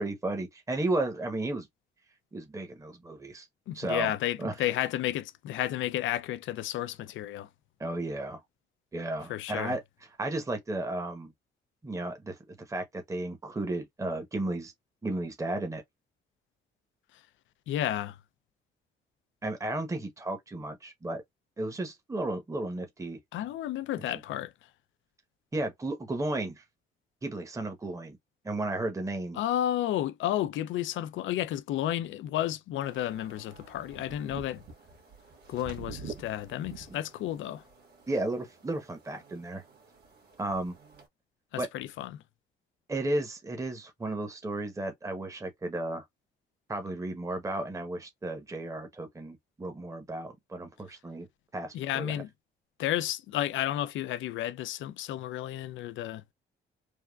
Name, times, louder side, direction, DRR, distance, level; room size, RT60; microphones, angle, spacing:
voice 1, 0.0-1.7 2.3-3.5 3.7-4.1 4.4-4.5 7.8-8.4 8.9-9.8 10.2-11.3 11.8-14.7 15.0-15.8 19.4-21.2 21.6-23.2 24.1-24.2 25.5-26.6 27.2-28.2 28.4-29.4 36.9-37.0 38.1-39.6 40.4-40.8 41.6-41.7 42.9-46.0 46.7-51.3 51.5-52.2, right 2 dB, 15° right, 0.9 m, -33 dB
voice 2, 3.7-7.5 9.3-9.7 17.7-18.2 23.3-24.5 29.4-34.6 35.5-37.6 41.5-42.2 51.7-52.3 52.8-56.2, left 12 dB, 75° left, 0.4 m, -32 dB
sound 1, 32.8-41.1, right 5 dB, 55° right, 1.5 m, -48 dB
3.5 x 2.2 x 2.2 m
cardioid pair, 90°, 20 cm